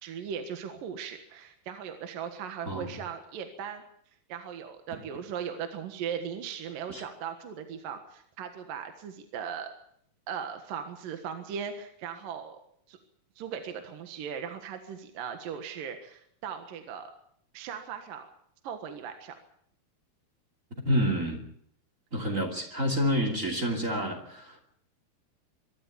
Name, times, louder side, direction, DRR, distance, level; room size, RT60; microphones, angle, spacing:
voice 1, 0.0-3.8 4.3-9.7 10.3-12.6 12.9-13.0 13.4-17.1 17.5-18.3 18.6-19.3, right 7 dB, 65° right, 6 dB, 3.1 m, -38 dB
voice 2, 20.8-21.4 22.1-24.6, equal, 25° right, 4 dB, 2.4 m, -28 dB
24.5 x 13.0 x 8.5 m, 0.67 s
omnidirectional pair, 4.4 m